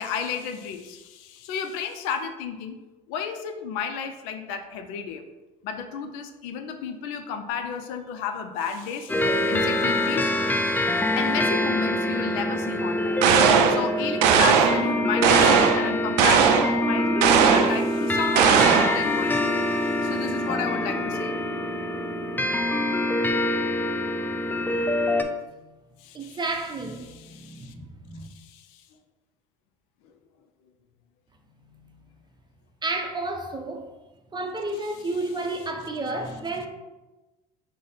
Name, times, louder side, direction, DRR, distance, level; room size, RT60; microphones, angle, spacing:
voice 1, 0.0-2.8 3.1-5.2 5.6-13.3 13.7-21.4 26.0-26.4 27.1-27.7 28.3-28.8, left 7 dB, 70° left, 0.5 m, -33 dB
sound 1, 9.1-25.2, left 1 dB, 10° left, 0.4 m, -25 dB
sound 2, 13.2-13.8 14.2-14.8 15.2-15.8 16.2-16.7 17.2-17.8 18.4-19.0, right 7 dB, 75° right, 0.4 m, -18 dB
voice 2, 26.1-28.3 31.7-31.9 32.8-33.9 34.3-36.7, right 2 dB, 20° right, 0.7 m, -32 dB
4.8 x 2.1 x 3.9 m
hypercardioid pair, 65°, 21 cm